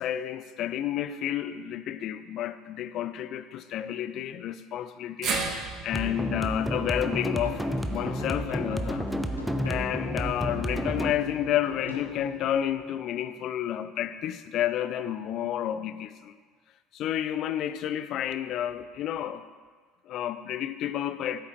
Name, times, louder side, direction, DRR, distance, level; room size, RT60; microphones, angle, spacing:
voice 1, 0.0-5.4 5.8-9.1 9.7-16.4 16.9-19.4 20.1-21.4, left 11 dB, 50° left, 12 dB, 0.5 m, -30 dB
sound 1, 5.2-9.5 9.8-9.9 11.1-11.2, right 4 dB, 45° right, 1.4 m, -37 dB
sound 2, 5.9-12.9, equal, ahead, 0.7 m, -32 dB
sound 3, 7.3-12.8, left 2 dB, 85° left, 1.0 m, -43 dB
14.0 x 8.4 x 3.1 m, 1.5 s
figure-of-eight pair, 60°, 0 cm